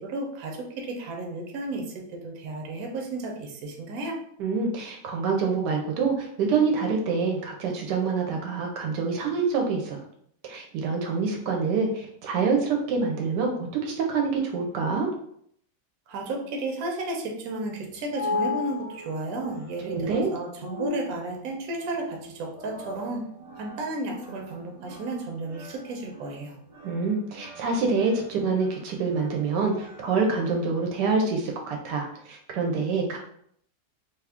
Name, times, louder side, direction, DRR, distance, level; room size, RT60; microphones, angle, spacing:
voice 1, 0.0-1.9 2.1-4.2 16.1-23.3 23.6-26.5, right 2 dB, 65° right, 1 dB, 1.1 m, -33 dB
voice 2, 4.4-10.0 10.4-15.1 19.9-20.3 26.8-33.2, right 4 dB, 80° right, 1 dB, 1.2 m, -26 dB
sound 1, 17.7-30.5, left 3 dB, 30° right, 0.7 m, -38 dB
2.9 x 2.4 x 3.4 m, 0.67 s
omnidirectional pair, 1.8 m